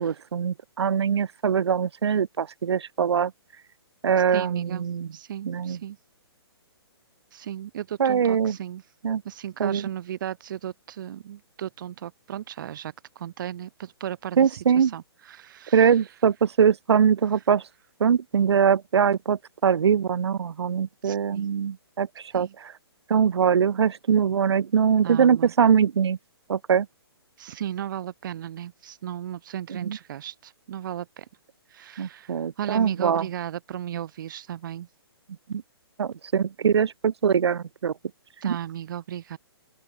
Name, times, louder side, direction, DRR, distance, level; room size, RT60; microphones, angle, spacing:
voice 1, 0.0-3.3 4.0-5.1 5.4-5.8 8.0-8.6 9.0-9.2 9.6-9.9 14.4-14.9 15.7-17.6 18.0-22.1 22.3-22.7 23.1-26.2 26.5-26.9 29.7-30.0 32.0-33.3 35.5-35.6 36.0-37.9 38.4-38.5, right 7 dB, 85° right, 0.7 m, -22 dB
voice 2, 4.3-4.9 5.1-6.0 7.3-8.8 9.2-16.0 21.0-21.5 22.3-22.5 25.0-25.5 27.4-31.3 31.7-34.9 38.4-39.4, right 11 dB, 50° right, 5.6 m, -35 dB
open air
hypercardioid pair, 155°, 14 cm